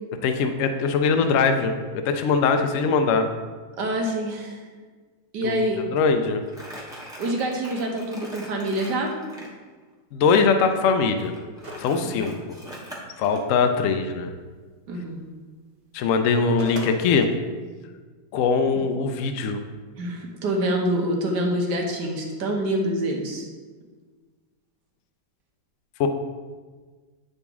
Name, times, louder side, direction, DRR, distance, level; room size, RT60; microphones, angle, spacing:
voice 1, 0.2-3.3 5.4-5.5 5.9-6.4 10.1-11.3 11.8-12.3 13.2-14.3 15.9-17.3 18.3-19.6 26.0-26.1, left 5 dB, 90° left, 7 dB, 0.7 m, -21 dB
voice 2, 3.8-4.6 5.3-5.9 7.2-9.1 12.0-12.3 14.9-15.2 20.0-23.5, right 1 dB, 70° right, 0 dB, 1.5 m, -26 dB
Crumpling crinkling, 6.5-9.5 11.2-13.4, equal, 5° right, 0.8 m, -42 dB
sound 1, 11.6-12.0 12.4-12.5 16.2-17.0, equal, 50° right, 0.3 m, -37 dB
8.3 x 4.0 x 3.5 m, 1.4 s
omnidirectional pair, 1.9 m